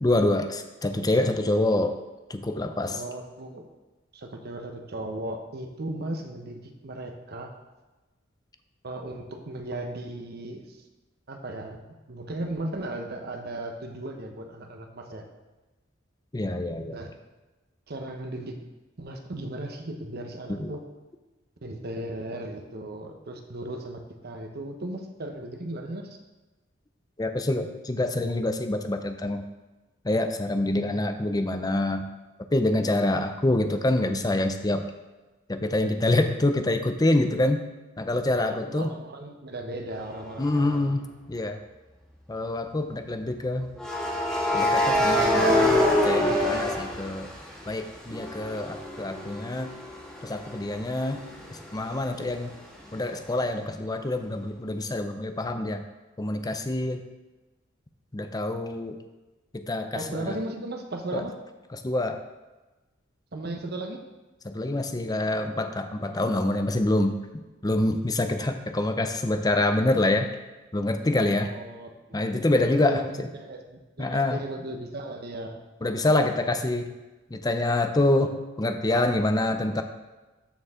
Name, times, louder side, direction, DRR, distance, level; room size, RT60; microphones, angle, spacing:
voice 1, 0.0-2.0 2.3-3.0 16.3-17.0 20.5-20.7 27.2-29.4 30.0-32.1 32.5-34.9 35.5-37.6 38.0-38.9 40.4-41.6 42.3-43.7 44.5-47.3 47.7-49.7 50.2-51.2 51.7-52.5 52.9-55.8 56.2-57.0 58.1-59.0 59.5-60.3 61.1-61.2 61.8-62.2 64.4-67.2 67.6-70.3 70.7-71.5 72.1-73.3 74.0-74.4 75.8-76.9 77.3-79.8, left 2 dB, 20° left, 7 dB, 0.5 m, -26 dB
voice 2, 2.9-3.6 4.1-7.5 8.8-10.8 11.3-15.2 16.9-17.1 17.9-18.6 19.0-20.8 21.6-26.2 38.3-41.0 59.9-61.4 63.3-64.0 71.4-72.2 72.5-75.6, right 1 dB, 55° right, 4 dB, 1.0 m, -36 dB
sound 1, 40.5-40.7 43.8-47.7 48.1-51.6, left 1 dB, 5° left, 1.6 m, -25 dB
13.0 x 4.6 x 3.7 m, 1.1 s
head